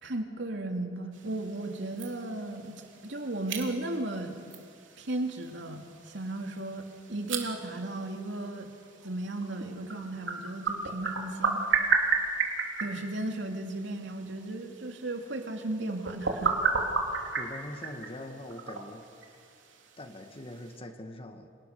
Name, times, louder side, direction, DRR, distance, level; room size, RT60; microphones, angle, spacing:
voice 1, 0.0-4.5 5.0-6.8 7.1-8.7 9.0-11.6 12.8-16.7, right 2 dB, 70° right, 3 dB, 3.0 m, -35 dB
sound 1, 1.1-20.8, right 4 dB, 85° right, 3.2 m, -35 dB
voice 2, 17.4-19.3 20.0-21.5, left 1 dB, 30° left, 6 dB, 1.7 m, -43 dB
29.5 x 26.5 x 6.9 m, 2.4 s
head